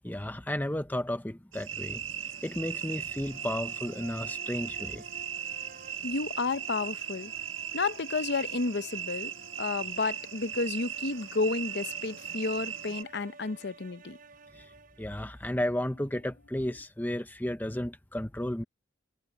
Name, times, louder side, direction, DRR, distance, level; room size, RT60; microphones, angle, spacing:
voice 1, 0.0-2.0 2.4-5.0 15.0-18.6, left 1 dB, 10° left, 0.8 m, -33 dB
sound 1, 1.5-13.0, right 8 dB, 80° right, 1.6 m, -38 dB
sound 2, 2.0-16.1, right 3 dB, 45° right, 6.1 m, -54 dB
voice 2, 6.0-7.3 7.7-9.3 9.6-14.2, left 3 dB, 55° left, 0.8 m, -31 dB
sound 3, 15.6-16.9, left 3 dB, 90° left, 4.5 m, -61 dB
head